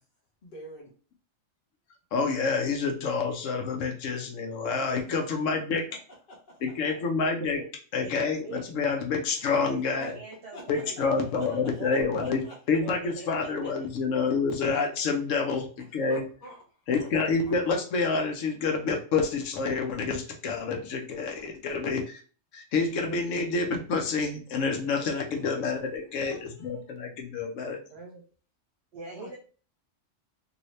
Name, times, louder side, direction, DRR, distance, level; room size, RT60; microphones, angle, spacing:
voice 1, 0.4-0.9 4.9-5.0 6.3-6.9 9.4-9.6 10.0-10.2 10.5-10.6 11.7-11.8 12.2-12.5 15.9-16.6 16.9-17.1 17.4-17.5 25.3-25.6 26.0-26.9 29.2-29.4, equal, 50° left, -3 dB, 0.9 m, -47 dB
voice 2, 2.1-5.8 6.6-7.6 7.9-10.2 10.7-16.2 16.9-22.2 22.5-27.8, left 4 dB, 80° left, 3 dB, 1.0 m, -28 dB
voice 3, 8.0-8.6 9.5-12.2 12.8-13.9 23.0-23.2 24.8-25.2 27.6-28.2 28.9-29.4, right 3 dB, 65° right, 1 dB, 0.9 m, -43 dB
2.7 x 2.7 x 3.1 m, 0.40 s
omnidirectional pair, 1.3 m